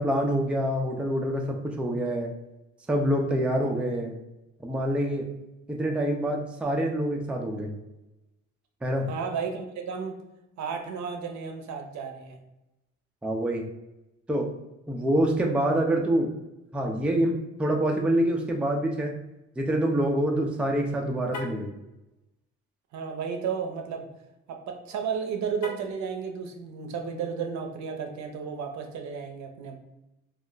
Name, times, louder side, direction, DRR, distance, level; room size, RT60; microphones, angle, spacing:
voice 1, 0.0-2.3 2.9-4.1 4.6-5.3 5.7-7.7 8.8-9.1 13.2-13.6 14.3-14.5 14.9-16.3 16.7-19.1 19.6-21.7, right 1 dB, 5° right, 1 dB, 0.3 m, -26 dB
voice 2, 9.1-10.2 10.6-12.4 22.9-24.1 24.5-29.8, right 6 dB, 65° right, 4 dB, 0.6 m, -33 dB
Car, 21.2-21.7 25.5-26.1, left 3 dB, 75° left, 0.6 m, -39 dB
2.3 x 2.1 x 3.7 m, 0.96 s
cardioid pair, 90°, 30 cm